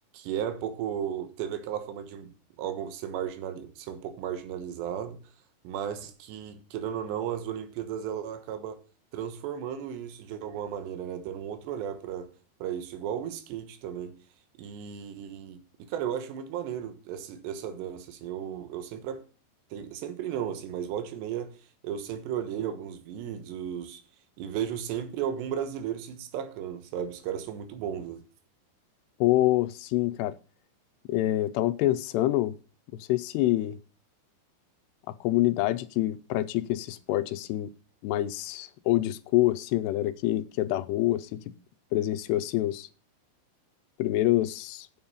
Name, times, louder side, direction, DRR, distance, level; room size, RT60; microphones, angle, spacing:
voice 1, 0.1-5.2 5.6-8.8 9.1-12.3 12.6-14.1 14.6-19.2 19.7-21.6 21.8-24.0 24.4-28.2, right 9 dB, 85° right, 3.3 m, -35 dB
voice 2, 29.2-30.4 31.1-32.5 33.0-33.8 35.1-37.7 38.0-41.4 41.9-42.9 44.0-44.9, left 15 dB, 85° left, 2.7 m, -26 dB
8.7 x 7.6 x 5.4 m
omnidirectional pair, 4.9 m